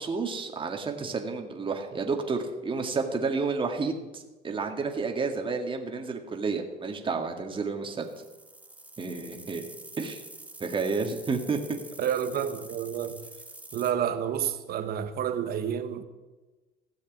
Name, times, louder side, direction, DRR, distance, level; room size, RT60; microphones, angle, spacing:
voice 1, 0.0-8.1 9.0-9.7 10.0-10.2 10.6-11.6, right 4 dB, 30° right, 2.0 m, -30 dB
sound 1, 7.9-13.9, right 2 dB, 10° right, 1.4 m, -47 dB
voice 2, 12.0-13.2 13.7-16.0, right 9 dB, 65° right, 1.3 m, -29 dB
16.0 x 6.5 x 9.3 m
cardioid pair, 110°, 17 cm